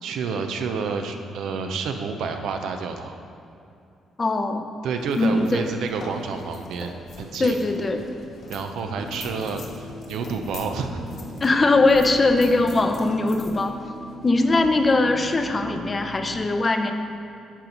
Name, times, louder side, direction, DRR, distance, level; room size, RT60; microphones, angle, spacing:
voice 1, 0.0-3.2 4.8-7.6 8.5-11.0, right 5 dB, 80° right, 5 dB, 0.6 m, -29 dB
voice 2, 4.2-4.6 5.2-5.6 7.4-8.0 11.4-13.7 14.2-16.9, left 2 dB, 30° left, 5 dB, 0.6 m, -20 dB
sound 1, 5.0-15.0, left 3 dB, 60° left, 1.1 m, -43 dB
sound 2, 9.0-16.4, right 1 dB, 30° right, 1.1 m, -38 dB
10.5 x 4.4 x 4.0 m, 2.6 s
cardioid pair, 90°, 0 cm